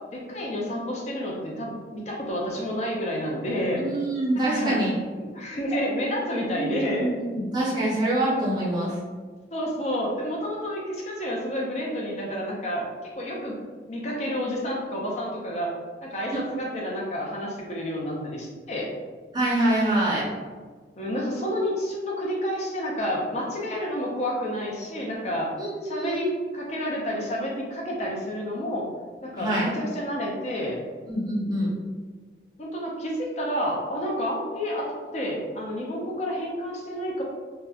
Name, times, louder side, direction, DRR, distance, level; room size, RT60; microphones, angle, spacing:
voice 1, 0.1-3.8 4.4-4.8 5.1-7.1 9.5-12.9 13.2-13.6 13.9-15.7 16.0-18.9 21.0-25.5 25.8-28.8 29.2-30.8 32.6-34.9 35.1-37.2, equal, 40° left, -3 dB, 0.4 m, -29 dB
voice 2, 3.8-5.0 6.6-6.7 7.0-9.0 16.3-16.4 19.3-20.3 25.6-26.4 29.4-29.7 31.1-31.7, right 1 dB, 25° right, -6 dB, 0.5 m, -25 dB
2.7 x 2.0 x 2.3 m, 1.5 s
head